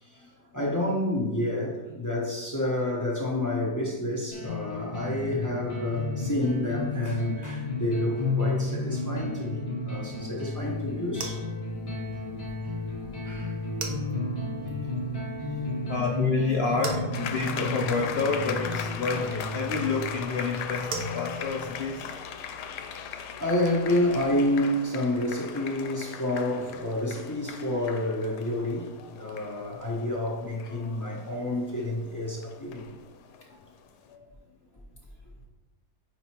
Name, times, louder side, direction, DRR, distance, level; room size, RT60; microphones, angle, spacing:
voice 1, 0.0-11.4 13.2-13.6 15.5-15.9 23.4-32.8, left 1 dB, 20° left, -3 dB, 0.5 m, -29 dB
sound 1, 4.3-20.2, left 2 dB, 40° left, 2.1 m, -32 dB
sound 2, 10.6-24.1, right 1 dB, 65° right, 1.2 m, -42 dB
voice 2, 14.6-15.2 15.9-22.2 34.1-34.3, left 4 dB, 70° left, 0 dB, 0.6 m, -30 dB
sound 3, 17.1-33.8, left 7 dB, 90° left, 1.2 m, -39 dB
4.8 x 4.4 x 4.4 m, 1.2 s
omnidirectional pair, 1.7 m